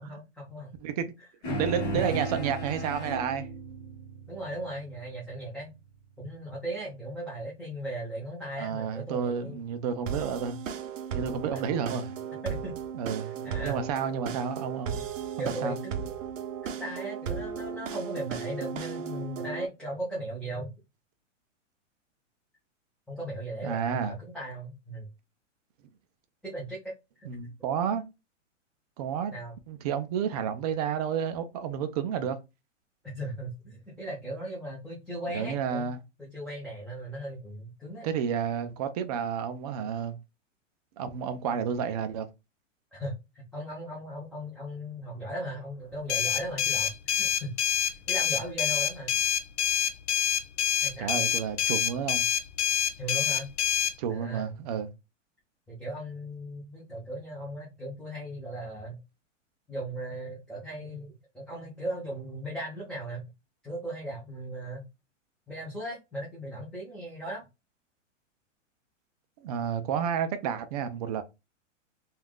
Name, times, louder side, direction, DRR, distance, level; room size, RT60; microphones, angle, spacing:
voice 1, 0.0-0.7 1.7-2.4 4.3-5.7 6.2-9.6 11.5-11.6 12.4-12.8 13.2-13.8 15.4-16.2 16.6-20.7 23.1-25.1 26.4-26.9 27.2-27.3 29.3-29.6 33.1-35.9 36.2-38.1 42.9-47.5 48.1-49.2 50.8-51.2 53.0-53.5 54.1-54.5 55.7-59.0 59.7-63.3 63.6-64.8 65.5-67.5, right 1 dB, ahead, 0.7 m, -37 dB
voice 2, 0.8-1.1 1.6-3.5 8.6-10.6 11.1-12.1 12.9-15.1 15.6-15.8 23.6-24.1 27.2-28.0 29.0-29.3 29.7-32.4 35.3-36.0 38.0-40.1 41.0-42.3 51.0-52.3 54.0-54.9 69.4-71.2, right 7 dB, 35° right, 0.4 m, -31 dB
sound 1, 1.4-6.2, right 1 dB, 35° left, 1.4 m, -36 dB
sound 2, 10.1-19.7, right 7 dB, 80° right, 0.6 m, -36 dB
sound 3, 46.1-53.9, left 9 dB, 65° left, 0.5 m, -26 dB
3.3 x 2.4 x 2.2 m
hypercardioid pair, 120°, 38 cm